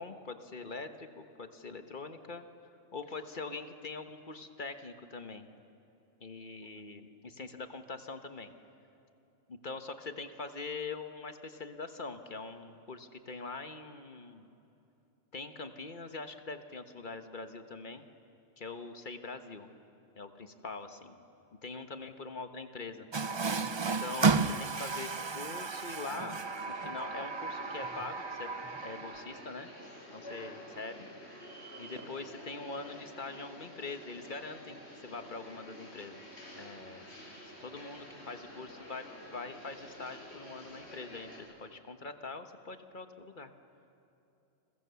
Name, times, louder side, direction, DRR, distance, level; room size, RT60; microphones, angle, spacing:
voice 1, 0.0-2.5 2.9-5.4 6.2-8.5 9.5-14.5 15.3-18.0 18.6-19.7 20.1-21.2 21.6-23.1 23.8-26.4 26.7-29.7 30.1-31.1 31.8-36.3 36.5-37.0 37.4-39.0 39.3-43.5, left 3 dB, 40° left, 8 dB, 1.4 m, -43 dB
Water tap faucet, 23.1-29.4, right 4 dB, 35° right, 0.4 m, -33 dB
sound 1, 26.3-41.4, equal, 60° left, 5.4 m, -50 dB
30.0 x 22.0 x 7.0 m, 2.9 s
omnidirectional pair, 1.3 m